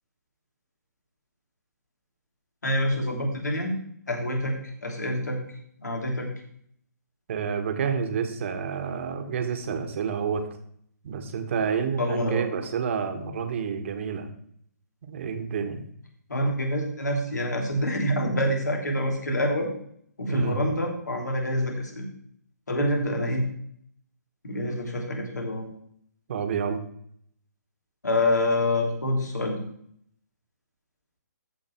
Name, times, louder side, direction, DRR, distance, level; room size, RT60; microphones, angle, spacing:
voice 1, 2.6-3.8 4.1-4.5 4.8-5.4 5.8-6.3 12.0-12.4 16.3-19.7 20.2-22.0 22.7-23.4 24.4-25.7 28.0-29.6, left 1 dB, 75° left, 2 dB, 3.2 m, -26 dB
voice 2, 7.3-10.5 11.0-14.3 15.0-15.8 20.3-20.6 26.3-26.8, right 6 dB, 45° right, 7 dB, 1.6 m, -29 dB
14.0 x 5.2 x 4.5 m, 0.66 s
figure-of-eight pair, 140°, 9 cm